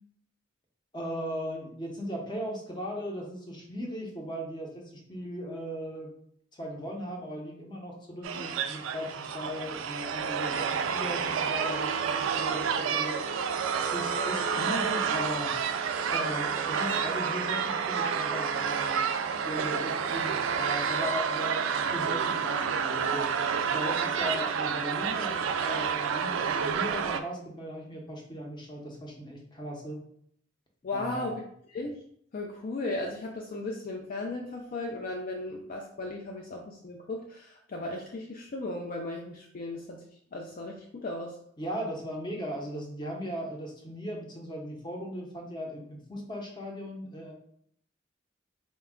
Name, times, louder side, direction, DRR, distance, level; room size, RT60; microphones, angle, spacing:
voice 1, 0.9-6.1 6.5-13.3 13.9-15.5 16.1-19.1 19.5-23.3 23.6-30.0 30.9-31.3 41.6-47.3, equal, 25° left, 0 dB, 0.7 m, -38 dB
sound 1, 8.2-27.2, right 6 dB, 80° right, 0.3 m, -29 dB
voice 2, 14.2-14.5 30.8-31.4 31.7-32.0 32.3-41.4, left 2 dB, 45° left, 1 dB, 0.4 m, -36 dB
4.1 x 2.3 x 3.5 m, 0.66 s
head